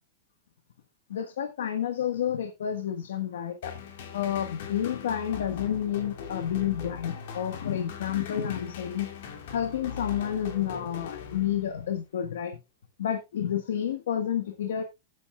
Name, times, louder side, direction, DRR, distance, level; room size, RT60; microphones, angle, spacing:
voice 1, 1.1-3.8 4.1-9.1 9.5-12.6 13.0-14.8, left 9 dB, 85° left, 1.4 m, -30 dB
sound 1, 3.6-11.9, left 7 dB, 60° left, 2.5 m, -41 dB
14.5 x 8.2 x 2.3 m
supercardioid pair, 150°, 0 cm